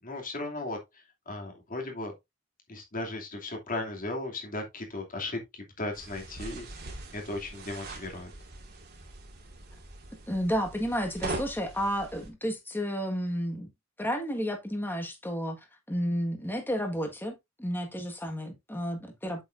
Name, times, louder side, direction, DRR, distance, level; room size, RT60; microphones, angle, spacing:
voice 1, 0.0-2.1 2.7-8.3, left 2 dB, 40° left, 2.6 m, -36 dB
sound 1, 5.9-12.3, right 2 dB, 50° right, 2.1 m, -42 dB
voice 2, 10.3-13.7 14.0-15.6 15.9-19.4, equal, 10° left, 1.6 m, -31 dB
8.2 x 7.0 x 2.6 m
head